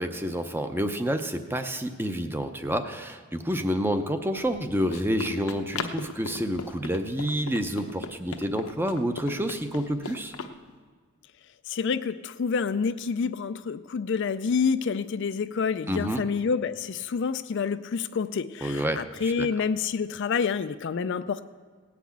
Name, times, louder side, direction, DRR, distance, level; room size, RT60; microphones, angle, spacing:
voice 1, 0.0-10.3 15.9-16.2 18.6-19.5, equal, 10° right, 7 dB, 0.6 m, -29 dB
Run, 4.4-10.6, left 4 dB, 75° left, 0.9 m, -39 dB
voice 2, 11.7-21.4, left 5 dB, 50° left, 12 dB, 0.4 m, -28 dB
17.5 x 6.0 x 8.5 m, 1.5 s
head